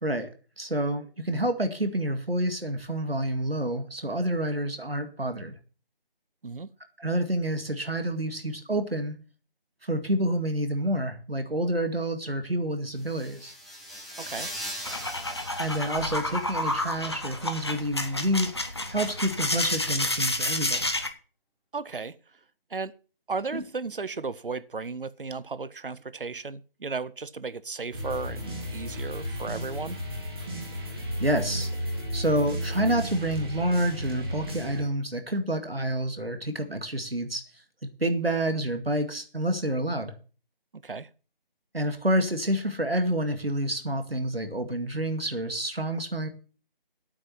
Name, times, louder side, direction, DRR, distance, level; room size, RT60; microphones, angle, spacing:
voice 1, 0.0-5.5 7.0-9.2 9.8-13.5 15.6-20.9 23.5-23.6 31.2-31.7 32.1-37.4 38.0-40.1 41.7-46.3, right 1 dB, 85° right, 2.1 m, -28 dB
sound 1, 13.0-16.9, equal, ahead, 0.6 m, -40 dB
voice 2, 14.2-14.5 21.7-22.1 22.7-22.9 23.3-30.0 40.7-41.1, right 4 dB, 65° right, 0.8 m, -35 dB
sound 2, 14.8-21.1, left 1 dB, 25° left, 0.8 m, -30 dB
sound 3, 27.9-34.8, equal, 25° right, 2.2 m, -33 dB
8.9 x 7.6 x 7.1 m
figure-of-eight pair, 165°, 29 cm